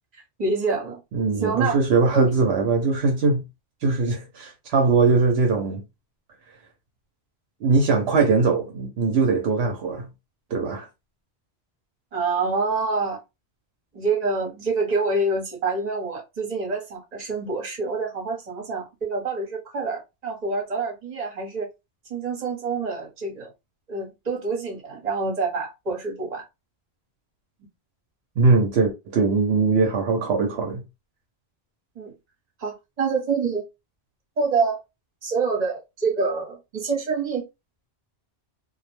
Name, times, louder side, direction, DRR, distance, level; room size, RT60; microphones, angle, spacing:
voice 1, 0.4-1.0 1.4-1.8 2.1-2.3 12.1-13.2 13.9-21.7 22.1-23.5 23.9-26.4 32.0-32.1 32.6-33.6 34.4-34.8 35.2-37.4, right 4 dB, 40° right, 1.0 m, -26 dB
voice 2, 1.1-3.4 3.8-5.8 7.6-10.1 10.5-10.9 28.4-30.8, right 4 dB, 75° right, 0.8 m, -21 dB
2.2 x 2.0 x 2.9 m
omnidirectional pair, 1.1 m